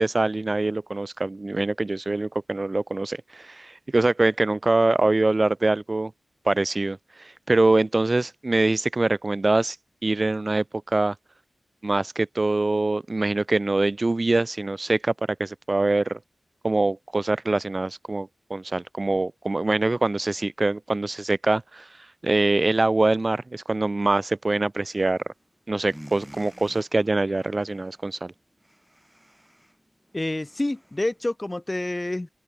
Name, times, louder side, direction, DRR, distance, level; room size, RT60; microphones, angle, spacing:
voice 1, 0.0-6.1 6.4-9.8 10.0-11.1 11.8-15.1 15.4-16.2 16.6-21.9 22.2-25.2 25.7-28.3, right 2 dB, 35° right, 1.5 m, -24 dB
sound 1, 24.9-25.5 25.7-31.3, equal, 5° right, 4.1 m, -50 dB
voice 2, 30.1-32.3, left 1 dB, 20° left, 1.2 m, -28 dB
wide cardioid pair, 65°, 0 cm